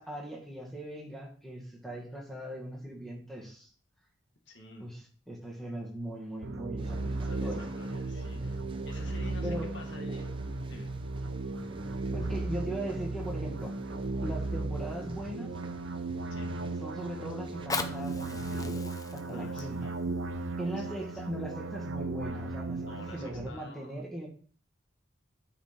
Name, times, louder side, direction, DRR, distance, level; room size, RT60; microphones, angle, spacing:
voice 1, 0.0-3.7 4.8-5.0 5.3-7.7 9.4-9.7 12.1-13.8 14.2-15.6 16.8-19.9 20.6-24.3, right 1 dB, ahead, -2 dB, 1.7 m, -39 dB
voice 2, 4.5-4.9 7.2-10.3 10.6-10.9 16.3-16.5 19.3-20.0 20.8-21.3 22.9-24.0, left 2 dB, 70° left, 1 dB, 1.9 m, -50 dB
sound 1, 6.4-23.5, right 2 dB, 85° right, 0.7 m, -36 dB
sound 2, 6.8-17.7, right 1 dB, 25° right, 0.7 m, -49 dB
Fire, 17.4-22.4 23.0-23.1, left 4 dB, 20° left, 0.6 m, -41 dB
9.8 x 5.1 x 4.3 m, 0.44 s
head